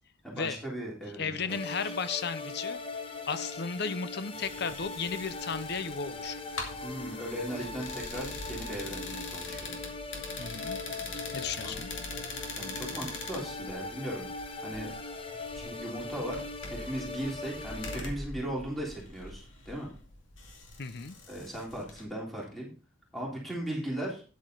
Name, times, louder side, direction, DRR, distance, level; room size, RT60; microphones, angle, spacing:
voice 1, 0.2-1.9 6.8-9.8 11.6-11.8 12.6-14.2 14.6-14.9 15.5-19.9 21.3-22.7 23.1-24.2, right 1 dB, ahead, -4 dB, 3.5 m, -37 dB
voice 2, 1.1-2.8 3.3-6.4 10.4-10.8 11.3-11.9 20.8-21.2, left 5 dB, 60° left, 13 dB, 0.8 m, -34 dB
sound 1, 1.5-18.0, left 3 dB, 30° left, 1.2 m, -40 dB
sound 2, 4.3-22.0, left 3 dB, 85° left, 2.4 m, -43 dB
9.7 x 8.8 x 3.9 m, 0.36 s
head